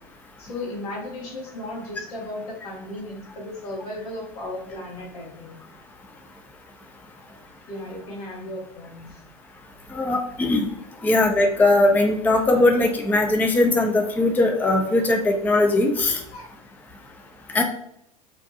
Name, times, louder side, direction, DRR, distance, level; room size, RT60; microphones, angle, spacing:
voice 1, 0.4-5.5 7.3-9.2 11.0-11.1 16.3-16.5, left 1 dB, 80° left, -2 dB, 1.1 m, -36 dB
voice 2, 9.9-10.7 11.0-16.2 17.5-17.6, left 2 dB, 10° left, 3 dB, 0.4 m, -20 dB
2.5 x 2.2 x 2.6 m, 0.74 s
hypercardioid pair, 85°, 19 cm